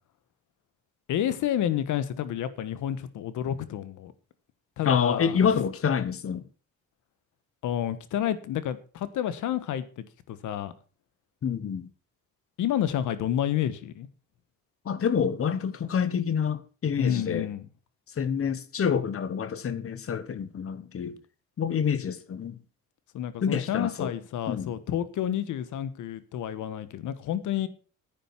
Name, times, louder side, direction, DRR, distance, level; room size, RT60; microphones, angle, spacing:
voice 1, 1.1-4.1 4.8-5.5 7.6-10.7 12.6-14.1 17.0-17.7 23.1-27.7, left 10 dB, 80° left, 1.3 m, -30 dB
voice 2, 4.8-6.5 11.4-11.9 14.8-17.5 18.2-21.2 21.6-22.6 23.4-24.1 24.5-24.7, left 7 dB, 50° left, 1.2 m, -27 dB
10.5 x 9.2 x 5.9 m
cardioid pair, 90°, 30 cm